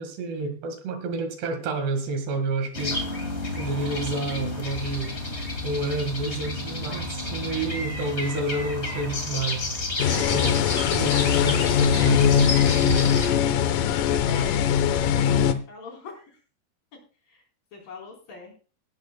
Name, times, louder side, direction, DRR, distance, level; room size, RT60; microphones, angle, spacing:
voice 1, 0.0-3.0 3.6-5.1 5.6-9.7 10.1-10.6 10.9-13.1, right 3 dB, 90° right, 7 dB, 4.1 m, -29 dB
sound 1, 2.7-13.3, left 2 dB, 25° left, 1.6 m, -31 dB
sound 2, 10.0-15.5, left 8 dB, 75° left, 2.0 m, -21 dB
voice 2, 14.2-14.6 14.9-16.4 17.3-17.4 17.7-18.6, left 4 dB, 60° left, 1 dB, 5.9 m, -43 dB
17.0 x 12.5 x 2.3 m, 0.35 s
omnidirectional pair, 4.6 m